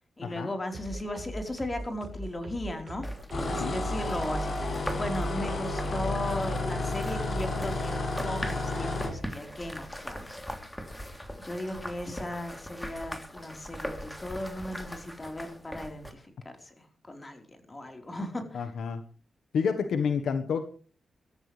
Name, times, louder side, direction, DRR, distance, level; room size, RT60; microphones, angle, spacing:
voice 1, 0.2-3.1 3.4-10.4 10.8-11.0 11.4-18.6, left 1 dB, 25° left, 5 dB, 4.2 m, -37 dB
sound 1, 0.7-7.5, equal, 45° right, 7.3 m, -40 dB
sound 2, 3.0-16.1, equal, 10° left, 3.3 m, -41 dB
sound 3, 3.3-9.2, left 2 dB, 50° left, 5.7 m, -31 dB
voice 2, 18.5-19.0 19.5-20.6, left 6 dB, 90° left, 8 dB, 1.3 m, -29 dB
23.0 x 14.0 x 3.4 m, 0.39 s
cardioid pair, 85°, 0 cm